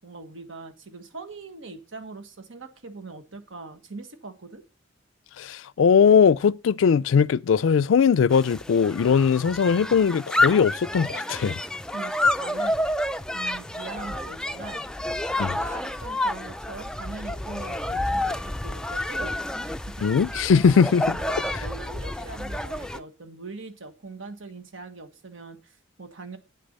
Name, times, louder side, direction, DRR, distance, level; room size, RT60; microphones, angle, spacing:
voice 1, 0.0-4.6 11.9-12.9 13.3-14.9 15.3-20.1 21.2-26.4, right 3 dB, 75° right, 1.4 m, -41 dB
voice 2, 5.4-11.6 15.4-15.6 20.0-21.2 21.5-21.6, left 6 dB, 75° left, 0.4 m, -20 dB
sound 1, 8.3-23.0, left 1 dB, 5° left, 0.4 m, -29 dB
8.7 x 6.8 x 5.3 m
head